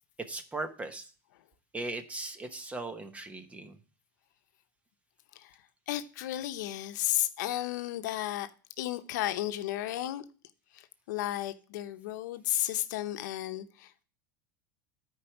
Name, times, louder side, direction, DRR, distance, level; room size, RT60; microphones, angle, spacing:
voice 1, 0.3-1.1 1.7-3.8, right 2 dB, 15° right, 1.0 m, -38 dB
voice 2, 5.9-8.5 8.8-10.2 10.7-14.0, left 14 dB, 80° left, 0.8 m, -33 dB
9.7 x 4.7 x 5.9 m
supercardioid pair, 140°, 10 cm